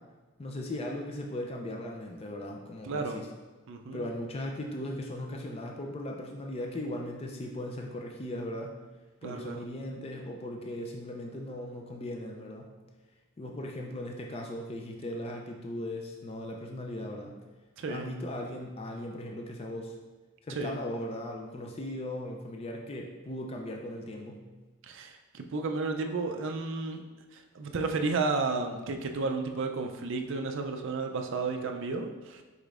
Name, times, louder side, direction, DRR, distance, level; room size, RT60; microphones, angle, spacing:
voice 1, 0.4-3.3 3.9-8.8 9.2-12.7 13.4-17.4 17.9-19.9 20.4-24.5, left 1 dB, 25° left, 0 dB, 0.4 m, -38 dB
voice 2, 2.8-3.2 3.7-4.1 9.2-9.6 17.8-18.1 20.5-20.8 24.8-27.0 27.3-32.4, right 3 dB, 55° right, 4 dB, 0.4 m, -32 dB
4.9 x 4.3 x 2.4 m, 1.2 s
head